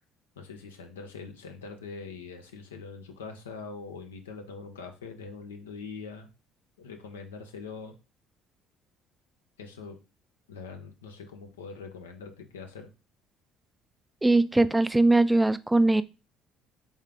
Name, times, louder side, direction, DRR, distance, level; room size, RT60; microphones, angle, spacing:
voice 1, 0.4-6.3 6.8-8.0 9.6-10.0 10.5-12.9, left 4 dB, 90° left, 5 dB, 0.6 m, -43 dB
voice 2, 14.2-16.0, right 2 dB, 10° right, 14 dB, 0.3 m, -21 dB
3.6 x 3.6 x 3.4 m, 0.31 s
hypercardioid pair, 60°, 0 cm